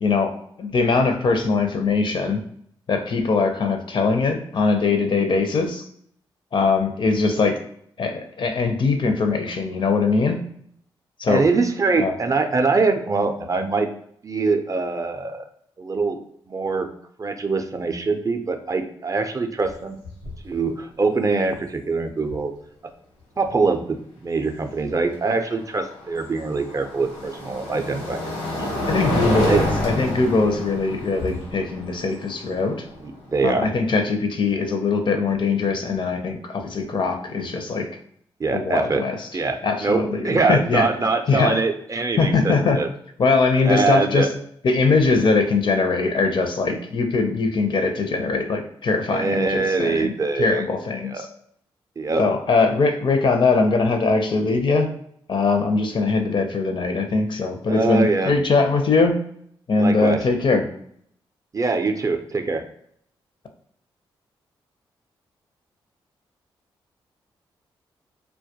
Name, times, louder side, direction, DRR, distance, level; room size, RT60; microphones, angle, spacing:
voice 1, 0.0-2.4 2.9-5.9 6.5-7.6 8.0-10.4 11.2-11.5 12.0-12.1 28.9-32.8 33.4-37.9 38.5-39.3 39.6-40.9 41.3-41.6 42.2-42.8 43.2-44.3 44.6-50.1 50.4-51.3 52.2-54.9 55.3-59.2 59.7-60.7, left 4 dB, 50° left, 5 dB, 0.5 m, -21 dB
voice 2, 11.3-13.9 14.2-15.4 15.8-16.2 16.5-16.9 17.2-20.0 20.4-22.5 23.4-28.2 29.5-29.6 33.0-33.7 38.4-39.0 39.3-42.9 43.6-44.3 49.1-50.7 51.0-51.3 52.0-52.2 57.7-58.3 59.8-60.2 61.5-62.6, right 4 dB, 35° right, 6 dB, 0.4 m, -23 dB
sound 1, 19.6-19.7 20.0-20.5 22.3-22.4 25.4-33.5, left 1 dB, 80° left, 0.9 m, -28 dB
2.2 x 2.1 x 2.7 m, 0.68 s
supercardioid pair, 45°, 10 cm